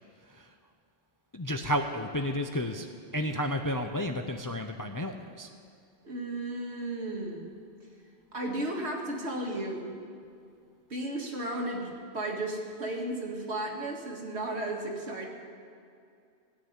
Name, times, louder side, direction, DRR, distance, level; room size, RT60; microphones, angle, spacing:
voice 1, 0.2-0.5 1.3-2.9 3.1-5.5, equal, 25° left, 5 dB, 0.5 m, -32 dB
voice 2, 6.0-7.5 8.3-9.9 10.9-15.3, right 1 dB, 70° right, 0 dB, 2.3 m, -34 dB
16.5 x 6.8 x 9.5 m, 2.4 s
omnidirectional pair, 1.2 m